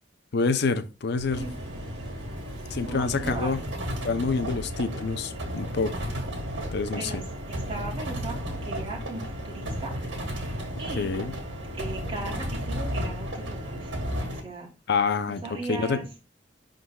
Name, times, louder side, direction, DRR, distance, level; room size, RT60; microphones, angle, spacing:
voice 1, 0.3-1.4 2.7-3.6 4.0-6.1 6.7-7.2 11.0-11.3 14.9-15.4 15.7-16.0, left 4 dB, 60° left, 0.6 m, -27 dB
Boom, 1.2-6.4, equal, 50° right, 2.8 m, -46 dB
sound 1, 1.3-14.4, equal, 70° right, 2.0 m, -33 dB
voice 2, 2.8-3.6 6.9-11.1 11.7-14.7 15.4-16.1, right 2 dB, 30° right, 2.6 m, -38 dB
11.5 x 3.9 x 2.3 m
head